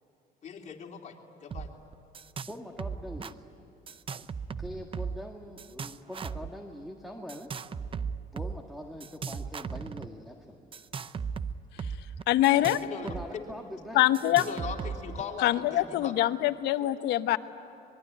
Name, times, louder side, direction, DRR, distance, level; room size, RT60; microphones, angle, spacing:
voice 1, 0.4-1.7 12.5-13.4 14.4-16.1, left 6 dB, 45° left, 1 dB, 3.3 m, -40 dB
sound 1, 1.5-1.7 1.9-2.5 2.8-3.3 3.9-5.3 5.6-6.5 7.3-8.5 9.0-10.1 10.7-13.2 13.5-13.6 14.1-15.2, right 6 dB, 30° right, 0.7 m, -37 dB
voice 2, 2.5-3.5 4.6-7.5 8.3-10.6 12.0-12.3 13.0-14.0 14.3-14.4 15.8-15.9, equal, ahead, 3 dB, 1.8 m, -43 dB
voice 3, 12.3-12.8 13.9-14.5 15.4-17.4, left 14 dB, 85° left, 11 dB, 1.0 m, -24 dB
24.0 x 22.0 x 9.9 m, 2.9 s
cardioid pair, 110°, 17 cm